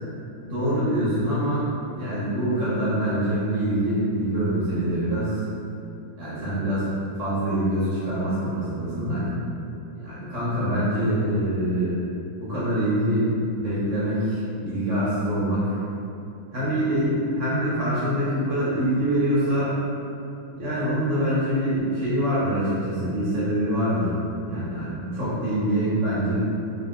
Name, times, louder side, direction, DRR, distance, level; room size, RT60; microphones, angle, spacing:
voice 1, 0.4-1.6 1.9-5.4 6.2-6.9 7.2-9.3 9.9-12.0 12.4-13.3 13.6-15.8 16.5-19.7 20.6-24.2 24.4-26.4, right 1 dB, 65° right, -11 dB, 0.7 m, -25 dB
3.9 x 2.5 x 2.2 m, 2.7 s
omnidirectional pair, 2.3 m